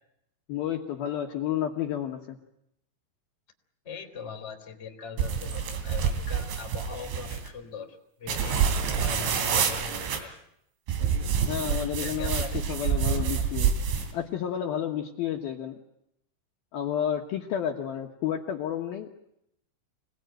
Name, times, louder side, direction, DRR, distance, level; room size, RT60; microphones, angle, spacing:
voice 1, 0.5-2.4 11.4-13.7 14.1-15.8 16.7-19.3, left 10 dB, 65° left, 2 dB, 2.8 m, -31 dB
voice 2, 3.8-10.3 11.7-13.5, left 5 dB, 20° left, 5 dB, 2.6 m, -41 dB
sound 1, 5.2-7.5 8.3-10.2 10.9-14.1, right 7 dB, 80° right, 5.0 m, -27 dB
27.0 x 19.5 x 9.1 m, 0.79 s
omnidirectional pair, 5.3 m